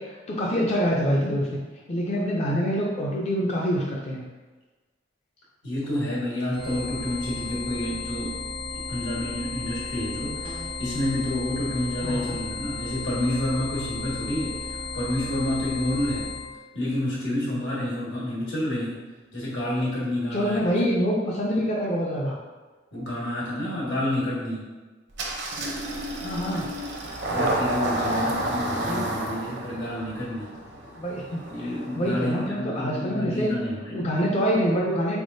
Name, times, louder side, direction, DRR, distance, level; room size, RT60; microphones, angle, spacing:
voice 1, 0.0-1.5 1.9-4.3 12.0-12.4 20.3-22.4 26.2-26.7 28.8-29.0 30.9-31.7 32.0-33.5 33.9-35.2, equal, 35° left, -3 dB, 0.4 m, -26 dB
voice 2, 5.6-8.4 8.7-16.3 16.7-19.0 19.3-20.7 22.9-24.7 27.3-30.6 31.5-34.1, left 1 dB, 80° left, -7 dB, 1.5 m, -29 dB
sound 1, 6.5-16.5, left 3 dB, 60° left, 1.4 m, -34 dB
sound 2, 10.4-11.0, right 1 dB, 30° right, 0.3 m, -43 dB
Engine starting, 25.2-32.5, right 1 dB, 65° right, 0.6 m, -30 dB
3.8 x 3.4 x 2.6 m, 1.3 s
head